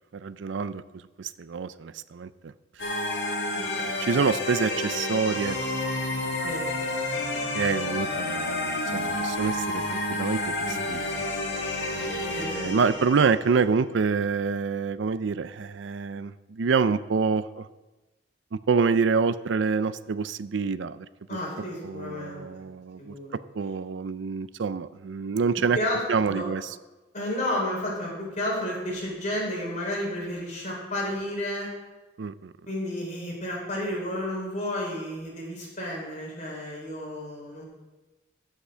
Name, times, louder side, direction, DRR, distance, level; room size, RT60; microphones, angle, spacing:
voice 1, 0.1-0.8 1.2-2.5 3.8-5.6 7.5-11.0 11.9-17.7 18.5-21.1 21.8-25.8 26.1-26.7 32.2-32.5, right 5 dB, 80° right, 15 dB, 0.5 m, -27 dB
sound 1, 2.8-13.6, left 2 dB, 75° left, 2.0 m, -30 dB
voice 2, 12.3-12.9 21.3-22.5 23.0-23.3 25.5-26.5 27.1-31.7 32.7-37.6, left 1 dB, 40° left, -3 dB, 4.1 m, -32 dB
14.5 x 5.9 x 6.2 m, 1.1 s
head